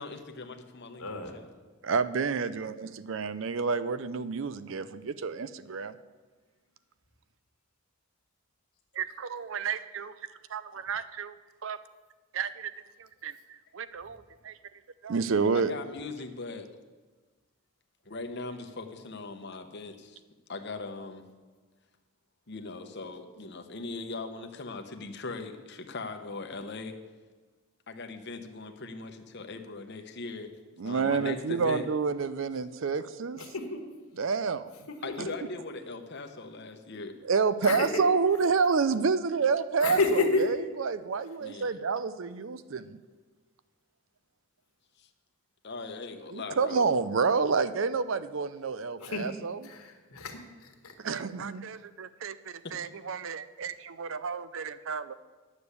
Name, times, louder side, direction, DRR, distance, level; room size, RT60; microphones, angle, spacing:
voice 1, 0.0-1.4 15.5-16.7 18.1-20.2 20.5-21.2 22.5-26.9 27.9-30.5 30.8-31.8 35.0-37.1 41.4-41.8 45.0-45.1 45.6-46.8, left 3 dB, 50° left, 6 dB, 0.9 m, -40 dB
voice 2, 1.0-1.4 33.4-33.8 34.9-35.0 37.6-38.0 39.8-40.4 49.0-49.3 49.6-50.9, left 3 dB, 80° left, 4 dB, 1.6 m, -30 dB
voice 3, 1.8-5.9 8.9-10.1 10.5-11.3 11.6-11.8 12.3-12.7 13.0-14.6 15.0-15.7 30.8-33.4 34.2-34.7 35.2-35.3 37.2-43.0 46.3-49.6 51.0-55.1, right 5 dB, 55° right, 14 dB, 0.5 m, -29 dB
9.8 x 7.0 x 8.3 m, 1.3 s
head